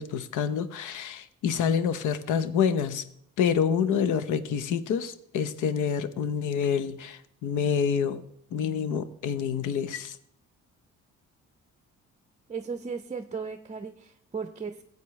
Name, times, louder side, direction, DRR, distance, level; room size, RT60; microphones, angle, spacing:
voice 1, 0.0-3.1 3.4-8.2 8.5-10.2, left 7 dB, 80° left, 14 dB, 0.8 m, -27 dB
voice 2, 12.5-14.8, right 5 dB, 25° right, 8 dB, 0.6 m, -36 dB
15.0 x 8.3 x 3.2 m, 0.69 s
cardioid pair, 90°, 30 cm